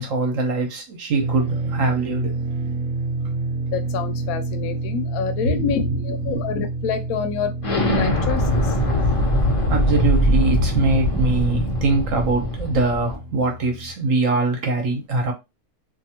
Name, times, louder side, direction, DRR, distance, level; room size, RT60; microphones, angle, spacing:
voice 1, 0.0-2.3 5.5-6.4 9.7-15.3, right 3 dB, 55° right, 1.1 m, -23 dB
sound 1, 1.2-13.9, right 3 dB, 70° right, 0.7 m, -29 dB
voice 2, 3.7-8.7, left 6 dB, 70° left, 0.9 m, -27 dB
Explosion, 7.6-13.1, left 1 dB, 55° left, 0.3 m, -21 dB
2.7 x 2.6 x 2.8 m
omnidirectional pair, 1.8 m